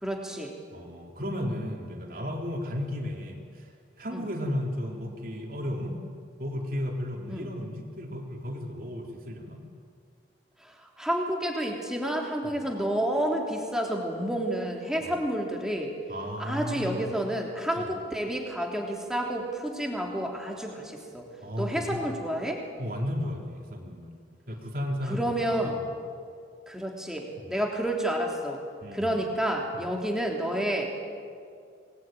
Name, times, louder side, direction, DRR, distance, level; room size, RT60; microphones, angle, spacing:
voice 1, 0.0-0.5 4.1-4.2 7.3-7.5 10.6-15.9 16.4-21.3 21.6-22.6 25.1-25.8 26.7-28.6 28.9-31.0, right 1 dB, 5° right, 0 dB, 3.3 m, -30 dB
voice 2, 0.7-6.0 6.4-9.6 12.4-12.6 15.0-15.2 16.1-17.0 17.7-17.9 21.4-22.0 22.8-24.2 24.5-25.9 27.4-27.5 28.8-29.2 29.7-29.9, left 1 dB, 50° right, 0 dB, 3.5 m, -34 dB
27.0 x 20.5 x 9.1 m, 2.2 s
head